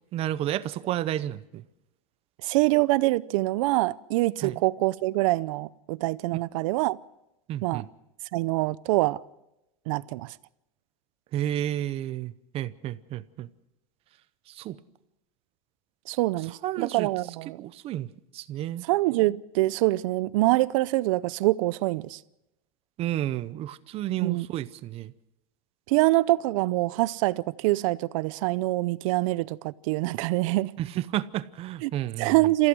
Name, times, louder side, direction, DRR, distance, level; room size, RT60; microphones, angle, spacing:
voice 1, 0.1-1.6 4.4-4.6 7.5-7.9 11.3-13.5 14.6-14.8 16.6-17.1 17.6-18.1 18.3-18.8 23.0-25.1 30.8-32.3, right 12 dB, 35° right, 0.7 m, -31 dB
voice 2, 2.4-7.0 7.6-7.8 8.3-9.2 9.9-10.3 16.1-17.6 18.8-22.2 24.2-24.5 25.9-30.7 31.8-31.9 32.2-32.7, right 19 dB, 70° right, 0.6 m, -25 dB
28.5 x 15.0 x 6.2 m
supercardioid pair, 150°, 17 cm